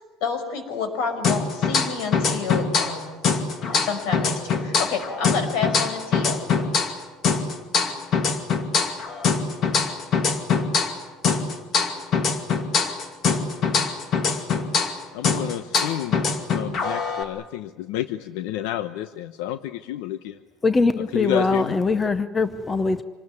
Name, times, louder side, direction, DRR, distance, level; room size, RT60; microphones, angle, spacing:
voice 1, 0.2-3.2 3.8-6.4, left 5 dB, 65° left, 7 dB, 5.8 m, -29 dB
sound 1, 1.2-3.0 3.2-7.0 7.2-11.0 11.2-15.0 15.2-17.2, left 5 dB, 35° left, 2.4 m, -23 dB
voice 2, 15.1-16.3 16.5-20.4 21.0-21.8, left 12 dB, 85° left, 11 dB, 0.9 m, -30 dB
voice 3, 20.6-23.0, left 3 dB, 15° left, 11 dB, 0.7 m, -22 dB
26.5 x 19.5 x 9.7 m, 1.3 s
cardioid pair, 165°, 0 cm